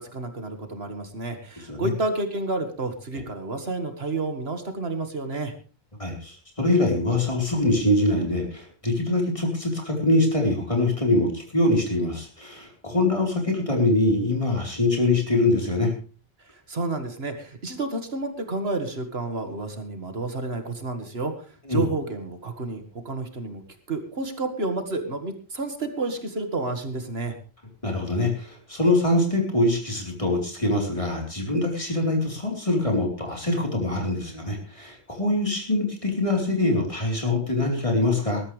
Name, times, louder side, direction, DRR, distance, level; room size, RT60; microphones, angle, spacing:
voice 1, 0.0-5.5 16.4-23.6 23.9-27.4, right 2 dB, 70° right, 7 dB, 2.1 m, -30 dB
voice 2, 6.0-15.9 21.7-21.9 27.8-38.4, left 2 dB, 30° left, 1 dB, 4.3 m, -24 dB
21.0 x 13.0 x 3.4 m, 0.36 s
omnidirectional pair, 1.1 m